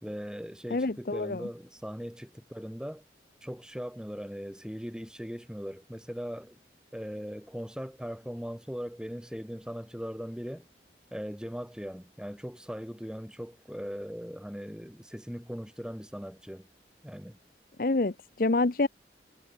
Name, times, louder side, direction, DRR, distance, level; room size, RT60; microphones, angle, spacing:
voice 1, 0.0-3.0 3.4-6.6 6.9-10.7 11.1-16.7 17.0-17.4, equal, 5° right, 5.1 m, -39 dB
voice 2, 0.7-1.5 17.8-18.9, left 2 dB, 50° left, 0.8 m, -27 dB
head